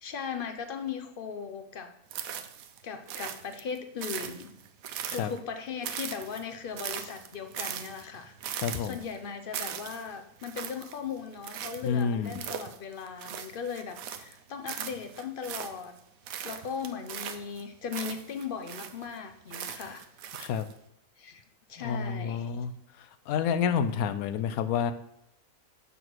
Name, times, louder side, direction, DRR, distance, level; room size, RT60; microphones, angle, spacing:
voice 1, 0.0-1.9 2.8-4.6 5.1-15.9 16.4-20.0 21.2-21.4 21.7-22.6, left 6 dB, 60° left, 7 dB, 0.5 m, -38 dB
sound 1, 2.1-2.8 3.1-5.5 5.8-14.4 14.7-16.0 16.3-19.1 19.5-20.7, right 9 dB, 80° right, 1.1 m, -39 dB
voice 2, 8.6-9.0 11.8-12.3 20.4-20.6 21.8-22.7 23.3-24.9, left 7 dB, 80° left, 11 dB, 1.0 m, -29 dB
6.8 x 4.1 x 6.1 m, 0.76 s
omnidirectional pair, 1.5 m